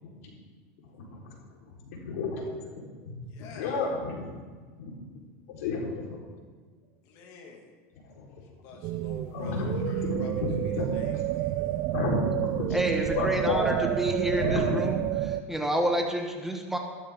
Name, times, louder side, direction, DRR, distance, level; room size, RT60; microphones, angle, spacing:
voice 1, 1.9-2.4 3.1-3.2 3.6-4.2 4.8-4.9 5.6-6.2 9.3-10.9 11.9-12.2 12.5-12.7 13.2-13.8 14.4-14.6, left 3 dB, 85° left, -2 dB, 4.0 m, -30 dB
voice 2, 3.3-3.8 7.0-7.7 8.6-11.8, left 4 dB, 55° left, 1 dB, 2.2 m, -48 dB
sound 1, 8.8-15.4, right 14 dB, 50° right, 0.5 m, -30 dB
voice 3, 12.7-16.8, right 1 dB, 5° right, 2 dB, 1.3 m, -29 dB
14.5 x 12.5 x 3.7 m, 1.5 s
supercardioid pair, 140°, 8 cm